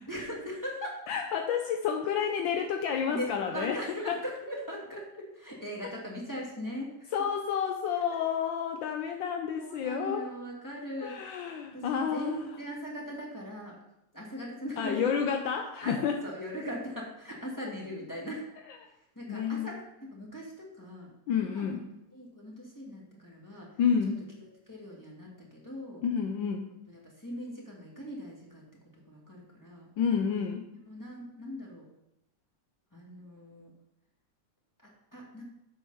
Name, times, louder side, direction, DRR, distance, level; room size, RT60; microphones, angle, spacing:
voice 1, 0.1-1.0 3.1-7.1 9.6-11.2 11.7-13.8 14.1-15.2 15.8-18.4 19.2-19.8 20.1-21.8 22.1-23.7 24.7-26.0 26.9-28.6 28.9-29.9 30.8-31.9 32.9-33.7 34.8-35.4, equal, 10° left, -3 dB, 2.0 m, -39 dB
voice 2, 1.1-3.8 4.1-4.2 7.1-10.3 11.0-12.4 14.8-16.2 19.3-19.8 21.3-21.8 23.8-24.2 26.0-26.7 30.0-30.7, left 7 dB, 75° left, 4 dB, 1.4 m, -30 dB
7.8 x 6.5 x 5.6 m, 0.87 s
omnidirectional pair, 2.1 m